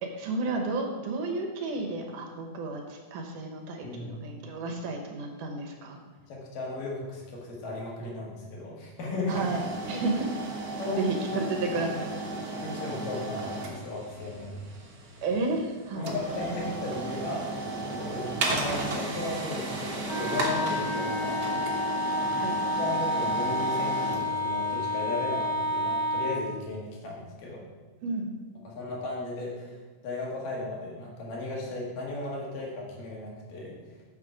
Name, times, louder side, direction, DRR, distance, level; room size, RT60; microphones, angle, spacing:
voice 1, 0.0-6.0 9.3-9.6 9.9-10.3 11.0-11.9 15.2-16.0 22.4-22.6 28.0-28.4, right 3 dB, 80° right, 2 dB, 2.7 m, -32 dB
voice 2, 3.8-4.2 6.3-9.5 10.8-11.0 11.3-11.5 11.9-12.0 12.3-12.4 12.6-14.5 16.0-17.5 17.8-21.9 22.2-22.4 22.8-27.7 28.6-29.8 30.0-33.8, left 2 dB, 90° left, -3 dB, 3.5 m, -36 dB
sound 1, 9.3-26.1, right 2 dB, 60° right, 1.1 m, -35 dB
Wind instrument woodwind instrument, 20.0-26.4, left 1 dB, 45° left, 2.9 m, -29 dB
7.5 x 6.6 x 5.0 m, 1.4 s
omnidirectional pair, 3.7 m